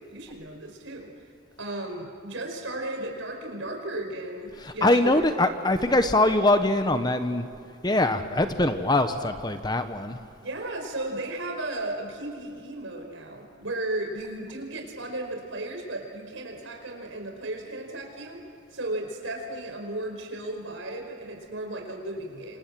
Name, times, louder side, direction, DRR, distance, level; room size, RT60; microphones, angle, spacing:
voice 1, 0.1-1.1 1.6-5.2 10.4-18.4 18.7-22.6, right 2 dB, 75° right, 3 dB, 5.3 m, -35 dB
voice 2, 4.6-7.5 7.8-10.2, left 2 dB, 20° left, 9 dB, 1.1 m, -23 dB
27.5 x 27.0 x 7.7 m, 2.6 s
head